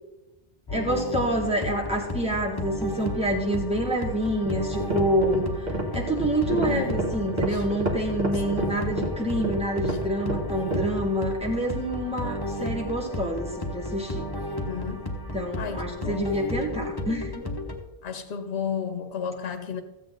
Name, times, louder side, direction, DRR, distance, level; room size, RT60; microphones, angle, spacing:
sound 1, 0.7-17.8, left 1 dB, 20° left, 1.1 m, -33 dB
voice 1, 0.7-14.2 15.3-17.4, right 1 dB, 5° right, 1.9 m, -27 dB
sound 2, 4.3-11.0, right 1 dB, 45° right, 1.5 m, -30 dB
voice 2, 6.5-7.0 7.5-7.6 8.5-8.9 9.9-10.0 14.6-15.2 15.6-16.1 18.0-19.8, left 6 dB, 70° left, 1.0 m, -33 dB
14.0 x 8.3 x 3.9 m
omnidirectional pair, 1.1 m